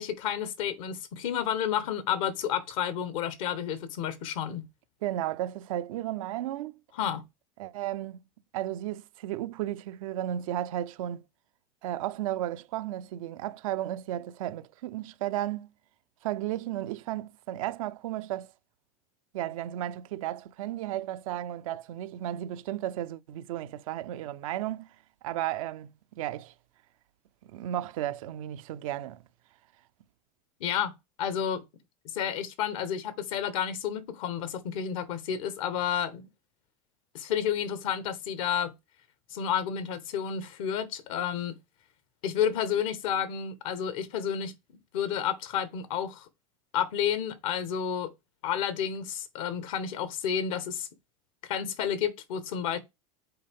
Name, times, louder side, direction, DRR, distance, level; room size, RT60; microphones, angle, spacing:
voice 1, 0.0-4.7 7.0-7.2 30.6-31.6 32.0-36.3 37.1-38.7 39.3-41.6 42.2-44.6 44.9-46.3 46.7-48.1 48.4-50.9 51.4-52.8, left 9 dB, 75° left, 1.2 m, -31 dB
voice 2, 5.0-6.7 7.6-8.2 8.5-11.2 11.8-15.7 16.2-18.5 19.3-24.9 25.2-26.5 27.4-29.2, right 13 dB, 80° right, 0.5 m, -34 dB
7.8 x 4.2 x 3.5 m
hypercardioid pair, 100°, 17 cm